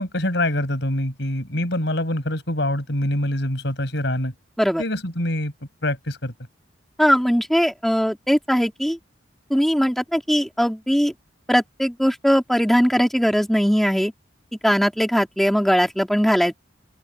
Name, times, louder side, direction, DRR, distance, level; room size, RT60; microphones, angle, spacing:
voice 1, 0.0-4.3 4.8-5.5 5.8-6.3, left 1 dB, 65° left, 7.3 m, -25 dB
voice 2, 7.0-9.0 9.5-11.1 11.5-14.1 14.6-16.6, equal, ahead, 3.3 m, -20 dB
open air
head